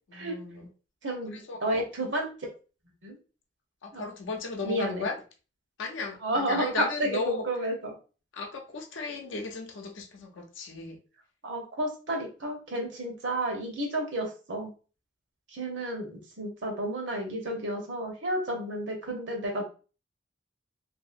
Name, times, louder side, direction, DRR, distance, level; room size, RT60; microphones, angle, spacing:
voice 1, 0.1-0.7 1.3-1.6 3.8-5.2 5.8-7.5 8.3-11.0, left 3 dB, 85° left, 3 dB, 0.6 m, -35 dB
voice 2, 1.0-2.3 3.0-3.2 3.9-4.0 4.6-5.1 6.2-7.9 11.4-14.7 15.5-19.6, right 1 dB, 75° right, 2 dB, 0.9 m, -31 dB
2.8 x 2.6 x 2.5 m, 0.35 s
head